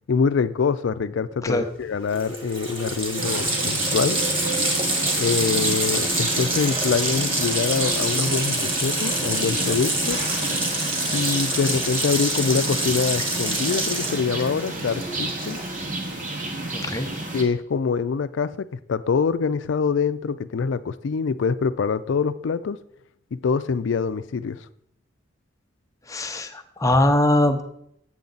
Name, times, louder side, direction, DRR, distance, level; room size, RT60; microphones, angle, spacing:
voice 1, 0.1-4.2 5.2-10.2 11.1-15.6 17.3-22.8 23.3-24.6, left 5 dB, 70° left, 14 dB, 0.4 m, -25 dB
Water tap faucet, 1.8-1.9 2.1-15.9, right 1 dB, 30° right, 1.5 m, -26 dB
sound 1, 3.2-17.4, right 2 dB, 45° right, 1.2 m, -31 dB
voice 2, 16.7-17.1 26.1-27.6, left 1 dB, 20° left, 6 dB, 0.7 m, -21 dB
7.6 x 7.2 x 3.9 m, 0.72 s
head